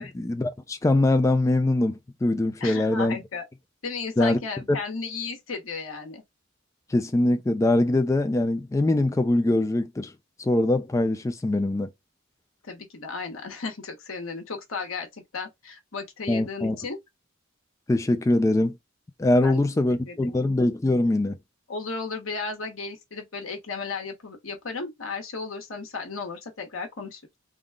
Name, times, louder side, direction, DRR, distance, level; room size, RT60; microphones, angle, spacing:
voice 1, 0.0-3.2 4.2-4.4 4.7-4.8 6.9-10.1 10.4-11.9 16.3-16.8 17.9-18.8 19.2-21.3, left 2 dB, 15° left, 0.3 m, -23 dB
voice 2, 2.6-3.4 3.8-6.2 12.6-17.0 19.4-19.6 20.0-20.4 21.7-27.4, left 4 dB, 90° left, 1.2 m, -34 dB
3.6 x 2.3 x 3.5 m
head